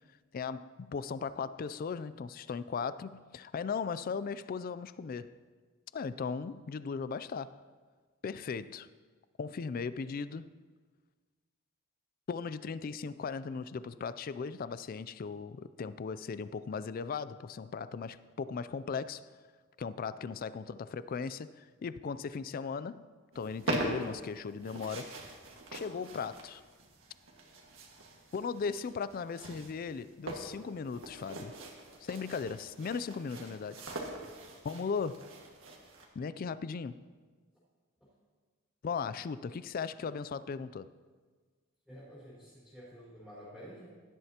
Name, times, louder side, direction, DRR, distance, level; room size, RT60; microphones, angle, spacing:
voice 1, 0.3-5.4 5.9-7.6 8.2-8.9 9.4-10.5 12.3-19.3 19.8-23.1 23.4-25.2 25.7-26.6 28.3-31.6 32.0-33.8 34.6-35.3 36.2-37.0 38.8-40.9, left 5 dB, 45° left, 0.3 m, -37 dB
sound 1, 23.3-36.1, right 2 dB, 70° right, 1.7 m, -42 dB
voice 2, 41.9-44.0, equal, 5° left, 4.3 m, -50 dB
16.5 x 11.0 x 2.9 m
head